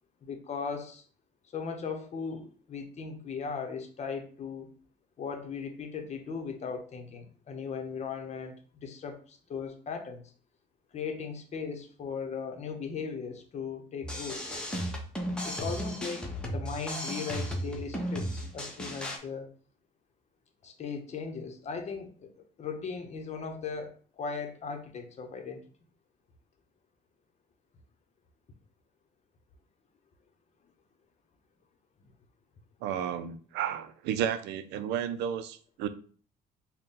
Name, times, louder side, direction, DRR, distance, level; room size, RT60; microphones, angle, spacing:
voice 1, 0.2-1.0 1.5-4.7 5.2-10.2 10.9-14.4 15.4-19.5 20.6-22.3 22.6-23.9 24.2-25.6, left 5 dB, 40° left, 5 dB, 0.8 m, -38 dB
sound 1, 14.0-19.2, equal, 5° left, 0.8 m, -35 dB
voice 2, 32.8-35.9, right 9 dB, 85° right, 12 dB, 0.4 m, -32 dB
4.0 x 2.2 x 3.7 m, 0.43 s
cardioid pair, 110°, 17 cm